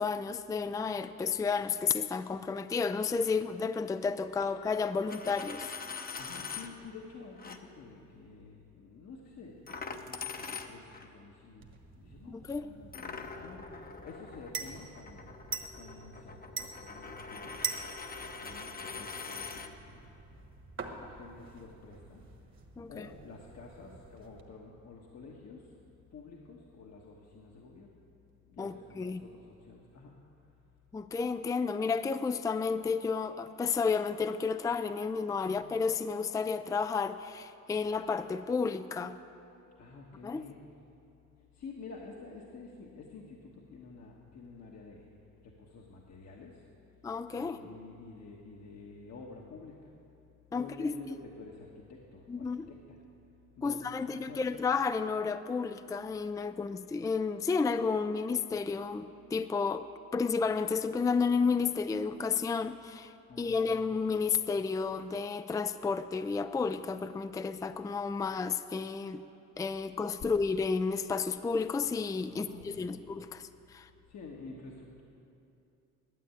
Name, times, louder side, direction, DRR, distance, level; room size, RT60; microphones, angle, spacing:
voice 1, 0.0-5.7 12.3-12.7 22.8-23.1 28.6-29.2 30.9-39.2 40.2-40.4 47.0-47.6 50.5-50.9 52.3-52.7 53.6-59.9 60.1-69.2 69.6-73.9, left 5 dB, 10° left, 11 dB, 0.4 m, -32 dB
Coin (dropping), 5.0-6.7 7.4-7.6 9.7-11.1 12.9-19.7, left 5 dB, 30° left, 0.9 m, -43 dB
voice 2, 6.2-15.4 15.7-17.6 18.2-20.1 21.0-22.2 22.9-25.7 26.1-27.9 28.5-30.1 35.4-35.6 39.8-40.6 41.5-45.1 45.4-46.6 47.3-49.9 50.5-53.0 53.6-54.5 63.3-64.0 69.8-70.0 72.3-73.0 74.1-75.0, left 4 dB, 60° left, -2 dB, 1.4 m, -50 dB
sound 1, 11.6-24.4, right 5 dB, 40° right, 1.4 m, -45 dB
11.5 x 8.8 x 8.4 m, 2.7 s
cardioid pair, 90°, 30 cm